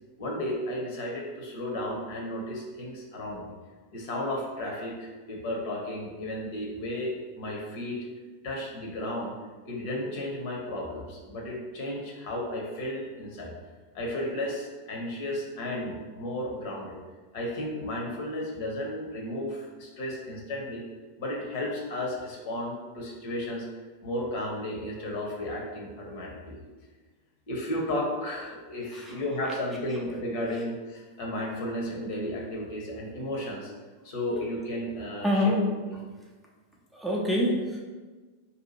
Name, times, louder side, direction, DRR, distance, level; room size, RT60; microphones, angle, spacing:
voice 1, 0.2-3.5 3.9-8.0 8.4-9.3 9.6-13.5 13.9-17.0 17.3-20.8 21.2-23.7 24.0-26.6 27.5-33.7 34.0-35.6 35.8-35.9, left 1 dB, 50° left, -1 dB, 0.9 m, -33 dB
voice 2, 28.9-29.5 30.5-30.6 35.2-35.7 36.9-37.8, left 1 dB, 5° right, -3 dB, 0.5 m, -27 dB
2.7 x 2.5 x 4.1 m, 1.3 s
figure-of-eight pair, 90°, 0 cm